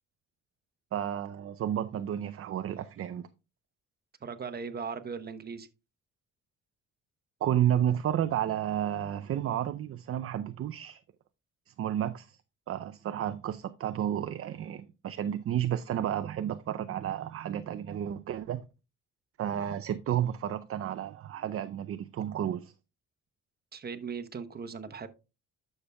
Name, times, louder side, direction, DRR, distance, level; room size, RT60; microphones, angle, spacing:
voice 1, 0.9-3.3 7.4-11.0 11.7-12.4 12.7-18.6 19.4-22.7, right 10 dB, 50° right, 0.5 m, -31 dB
voice 2, 4.2-5.7 23.7-25.1, right 5 dB, 30° right, 1.0 m, -38 dB
11.5 x 6.7 x 2.3 m
cardioid pair, 90°, 30 cm